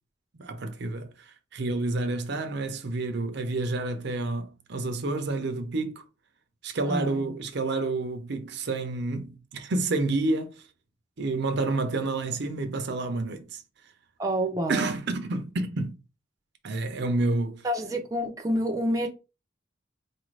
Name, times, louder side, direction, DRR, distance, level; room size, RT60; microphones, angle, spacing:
voice 1, 0.3-6.0 6.6-10.6 11.2-13.6 14.7-16.0 16.6-17.7, right 2 dB, 60° right, 0.6 m, -29 dB
voice 2, 6.9-7.3 14.2-14.9 17.6-19.1, equal, 15° right, 0.5 m, -28 dB
4.0 x 2.5 x 3.2 m
head